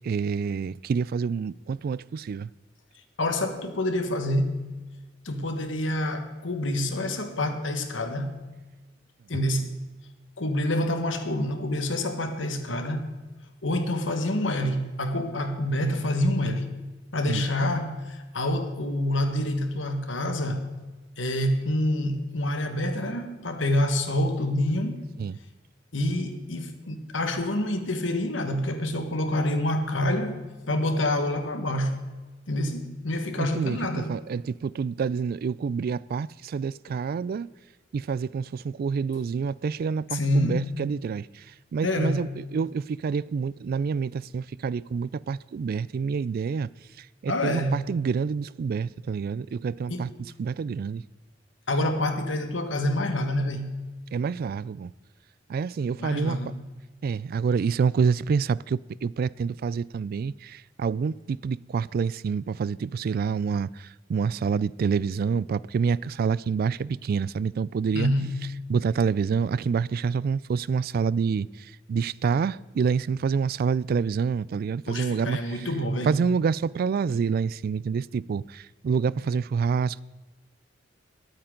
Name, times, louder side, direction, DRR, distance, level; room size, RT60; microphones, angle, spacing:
voice 1, 0.0-2.5 17.3-17.4 25.2-25.4 33.4-37.5 37.9-41.3 41.7-46.7 47.2-50.1 50.4-51.0 54.1-54.9 55.5-56.4 57.0-68.1 68.7-71.5 71.9-75.7 76.0-80.0, right 6 dB, 50° right, 0.3 m, -27 dB
voice 2, 3.2-4.6 5.2-8.3 9.3-9.7 10.4-13.1 13.6-16.7 17.1-20.7 21.2-25.0 25.9-30.4 30.7-32.0 32.5-34.2 40.1-40.7 41.8-42.3 47.3-47.8 49.9-50.1 51.7-53.7 56.0-56.6 67.9-68.3 74.8-76.1, left 1 dB, 90° left, 1.6 m, -27 dB
21.5 x 8.9 x 3.9 m
head